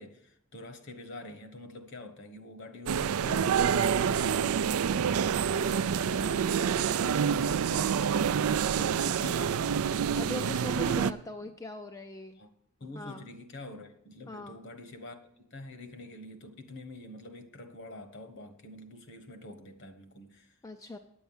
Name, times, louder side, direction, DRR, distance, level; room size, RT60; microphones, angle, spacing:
voice 1, 0.0-3.6 3.9-8.4 8.7-11.0 11.4-11.5 12.4-12.5 12.8-20.6, left 1 dB, 55° left, 1.3 m, -46 dB
sound 1, 2.9-11.1, right 7 dB, 75° right, 0.4 m, -27 dB
voice 2, 3.7-4.0 10.2-12.4 13.0-13.3 14.3-14.6 20.6-21.0, left 2 dB, 15° left, 0.4 m, -41 dB
10.0 x 7.0 x 7.2 m
head